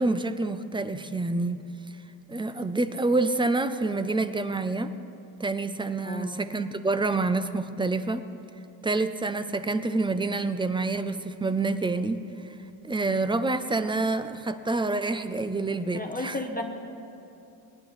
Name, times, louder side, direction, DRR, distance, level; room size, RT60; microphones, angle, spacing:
voice 1, 0.0-1.6 2.3-4.9 5.4-8.2 8.8-12.5 12.8-16.4, right 3 dB, 10° right, 11 dB, 0.4 m, -27 dB
voice 2, 6.0-6.4 15.9-16.6, left 2 dB, 20° left, 2 dB, 0.9 m, -33 dB
18.5 x 10.5 x 3.2 m, 2.7 s
cardioid pair, 90°, 46 cm